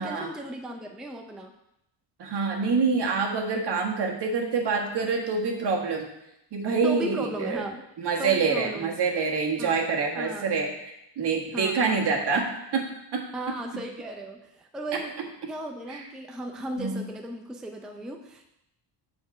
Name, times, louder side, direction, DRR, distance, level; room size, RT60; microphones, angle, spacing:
voice 1, 0.0-1.5 6.8-7.9 8.2-9.0 9.6-9.8 10.1-10.5 11.5-12.2 13.3-15.2 15.5-18.5, right 1 dB, ahead, 3 dB, 0.4 m, -36 dB
voice 2, 2.2-6.1 6.5-7.6 8.0-10.7 11.2-12.4 12.7-12.8 13.1-13.2 15.9-16.0 16.8-17.0, right 4 dB, 60° right, 0 dB, 1.6 m, -26 dB
7.2 x 4.3 x 6.0 m, 0.83 s
cardioid pair, 135°, 45 cm